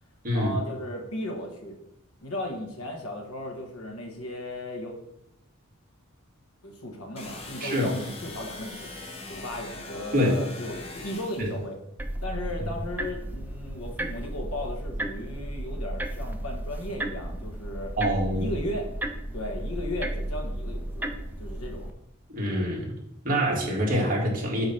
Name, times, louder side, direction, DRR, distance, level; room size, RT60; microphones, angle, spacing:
voice 1, 0.3-1.8 2.2-5.0 6.6-8.9 9.3-11.8 12.2-17.9 18.3-18.9 19.3-21.1 21.4-21.9, left 1 dB, 75° left, 3 dB, 1.3 m, -36 dB
sound 1, 7.2-11.6, left 2 dB, 25° left, 0.9 m, -41 dB
voice 2, 7.6-7.9 10.1-10.4 11.4-11.5 18.0-18.5 22.3-22.9 23.2-24.7, equal, 40° right, -3 dB, 1.9 m, -25 dB
sound 2, 12.0-21.9, right 1 dB, 10° right, 0.4 m, -34 dB
8.0 x 3.0 x 5.6 m, 0.79 s
head